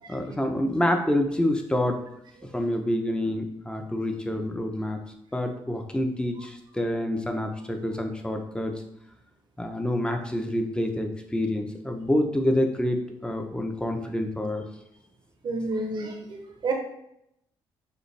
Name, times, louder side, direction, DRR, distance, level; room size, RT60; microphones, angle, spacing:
voice 1, 0.1-2.0 2.5-5.0 5.3-8.7 9.6-14.6, left 1 dB, 10° left, 4 dB, 0.7 m, -27 dB
voice 2, 15.4-16.7, right 3 dB, 50° right, 2 dB, 0.9 m, -30 dB
6.7 x 2.4 x 3.3 m, 0.79 s
cardioid pair, 75°, 10 cm